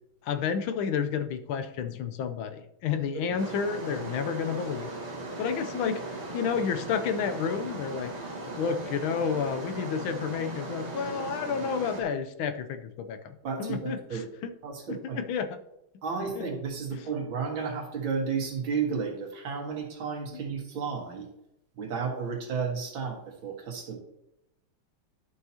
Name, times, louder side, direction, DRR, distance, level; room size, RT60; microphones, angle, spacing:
voice 1, 0.2-4.9 5.4-8.1 8.6-14.5 14.9-15.6 16.4-16.5 16.9-17.0, left 6 dB, 80° left, 9 dB, 1.5 m, -31 dB
sound 1, 3.4-12.0, right 2 dB, 25° right, 1.2 m, -38 dB
voice 2, 13.4-14.3 14.6-15.2 16.0-21.3 21.8-24.0, right 5 dB, 75° right, 1 dB, 2.3 m, -32 dB
12.0 x 5.6 x 2.8 m, 0.82 s
omnidirectional pair, 2.2 m